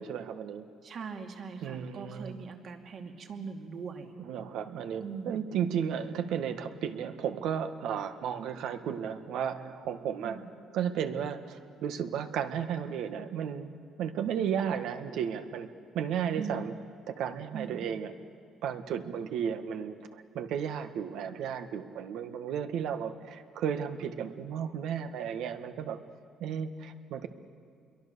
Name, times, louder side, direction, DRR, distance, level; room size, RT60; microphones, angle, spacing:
voice 1, 0.0-0.7 1.6-2.4 4.2-10.4 10.7-15.7 15.9-16.7 17.1-18.1 18.6-26.0 26.4-27.3, right 8 dB, 75° right, 8 dB, 1.6 m, -34 dB
voice 2, 0.8-4.1 5.0-5.5 10.2-10.6 16.4-16.7 17.5-18.0, right 5 dB, 50° right, 3 dB, 2.6 m, -41 dB
28.0 x 22.5 x 6.9 m, 2.3 s
cardioid pair, 115°, 0 cm